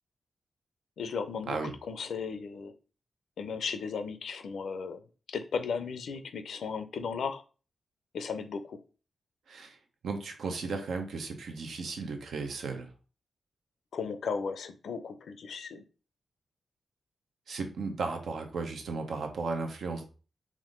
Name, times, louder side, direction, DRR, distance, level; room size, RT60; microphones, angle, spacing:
voice 1, 1.0-2.7 3.4-5.0 5.3-7.4 8.1-8.8 13.9-15.8, left 5 dB, 80° left, 10 dB, 0.4 m, -35 dB
voice 2, 9.5-9.8 10.0-12.9 17.5-20.0, right 4 dB, 80° right, 5 dB, 0.7 m, -35 dB
3.6 x 2.5 x 3.7 m, 0.35 s
cardioid pair, 65°, 0 cm